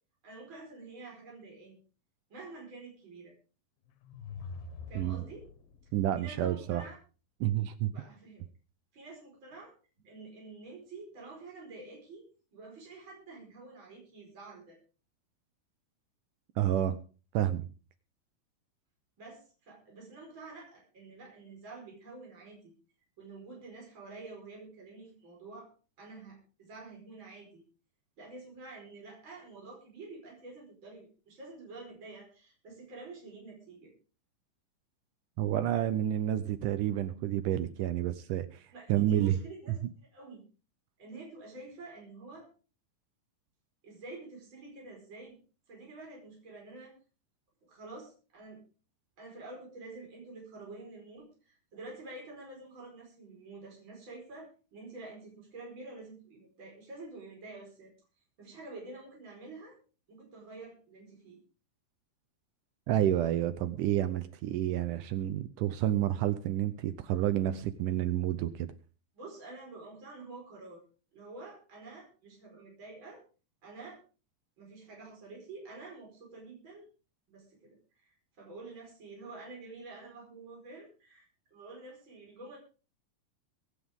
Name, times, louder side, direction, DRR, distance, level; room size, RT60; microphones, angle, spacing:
voice 1, 0.2-1.8 2.3-3.3 4.9-5.5 6.2-7.0 7.9-8.4 8.9-9.7 10.0-14.8 19.2-22.7 23.2-25.7 26.0-27.6 28.2-33.9 38.7-40.4 41.0-42.5 43.8-45.4 45.7-46.9 47.7-48.6 49.2-57.9 58.4-59.8 60.1-61.4 69.1-70.8 71.1-73.2 73.6-74.0 74.6-76.9 77.3-78.1 78.4-82.6, right 3 dB, 35° right, -1 dB, 5.6 m, -48 dB
sound 1, 3.9-5.9, left 4 dB, 90° left, 3.2 m, -45 dB
voice 2, 5.9-6.8 7.4-7.9 16.6-17.0 17.3-17.7 35.4-38.6 38.9-39.3 62.9-68.7, right 12 dB, 75° right, 13 dB, 2.2 m, -29 dB
23.5 x 9.8 x 3.7 m, 0.36 s
omnidirectional pair, 4.0 m